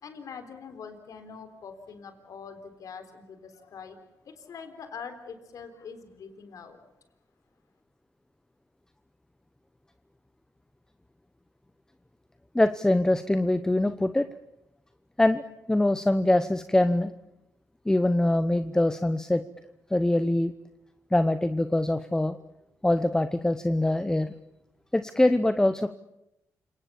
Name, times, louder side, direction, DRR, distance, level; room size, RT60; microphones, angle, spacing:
voice 1, 0.0-6.8, left 6 dB, 65° left, 9 dB, 3.8 m, -44 dB
voice 2, 12.5-14.3 15.2-15.4 15.7-17.1 17.9-19.4 19.9-20.5 21.1-22.4 22.8-24.3 24.9-25.9, left 1 dB, 10° left, 11 dB, 0.9 m, -23 dB
29.0 x 19.0 x 7.1 m, 0.87 s
cardioid pair, 85°, 6 cm